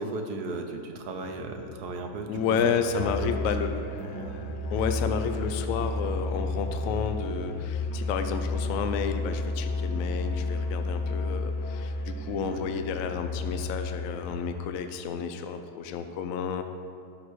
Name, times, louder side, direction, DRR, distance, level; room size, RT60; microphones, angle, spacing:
voice 1, 0.0-3.3 3.7-4.5 12.5-12.6, right 3 dB, 70° right, 4 dB, 1.4 m, -36 dB
sound 1, 1.2-14.5, left 4 dB, 45° left, 1.5 m, -45 dB
voice 2, 2.3-3.7 4.7-16.6, left 6 dB, 65° left, 7 dB, 0.9 m, -31 dB
Musical instrument, 2.9-14.6, left 2 dB, 80° left, 1.4 m, -32 dB
11.5 x 5.0 x 6.2 m, 2.4 s
omnidirectional pair, 1.8 m